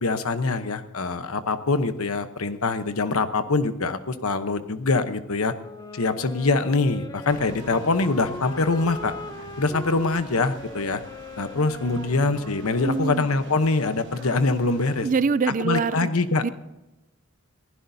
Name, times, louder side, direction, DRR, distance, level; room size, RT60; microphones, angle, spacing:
voice 1, 0.0-5.5 5.9-9.1 9.6-11.0 11.4-15.1 15.6-16.4, left 3 dB, 90° left, 10 dB, 1.0 m, -24 dB
Wind instrument woodwind instrument, 5.6-13.9, left 2 dB, 20° left, 0.8 m, -40 dB
sound 1, 7.3-15.1, right 3 dB, 60° right, 1.2 m, -44 dB
voice 2, 12.8-13.3 15.0-16.1 16.4-16.5, right 5 dB, 40° right, 17 dB, 0.4 m, -24 dB
22.0 x 15.5 x 2.7 m, 1.0 s
head